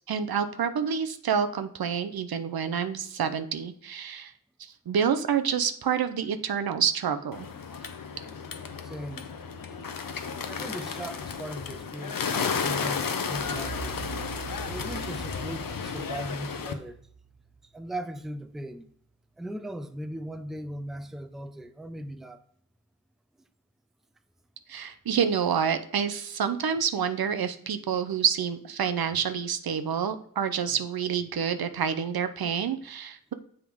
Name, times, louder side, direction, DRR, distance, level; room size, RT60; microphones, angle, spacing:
voice 1, 0.1-4.3 4.6-7.5 24.7-33.3, right 7 dB, 80° right, 0.6 m, -28 dB
Bird, 7.3-16.7, left 6 dB, 65° left, 0.7 m, -33 dB
voice 2, 8.8-9.3 10.5-14.0 14.6-17.0 17.7-18.9 19.4-22.4, right 1 dB, ahead, 0.4 m, -38 dB
sound 1, 13.3-18.2, right 6 dB, 35° right, 0.9 m, -43 dB
7.2 x 3.7 x 4.5 m
wide cardioid pair, 65°, 36 cm